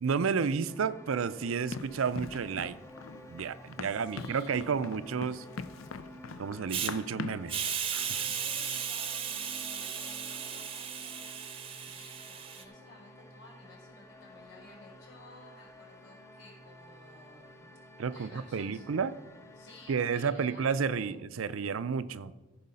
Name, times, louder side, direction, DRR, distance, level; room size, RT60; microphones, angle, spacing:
voice 1, 0.0-2.8 3.3-5.4 6.4-7.6 7.9-8.3 18.0-19.1 19.9-22.3, right 6 dB, 85° right, 14 dB, 0.5 m, -31 dB
sound 1, 0.7-20.1, left 1 dB, 15° left, 0.6 m, -52 dB
Run, 1.7-7.5, left 4 dB, 90° left, 0.5 m, -42 dB
voice 2, 3.8-4.6 8.2-11.3 11.8-17.8 18.1-18.8 19.6-21.2, left 2 dB, 65° left, -1 dB, 3.9 m, -55 dB
Hiss, 6.7-6.9 7.5-12.6, right 8 dB, 25° right, 0.7 m, -35 dB
14.5 x 5.5 x 5.5 m, 1.2 s
head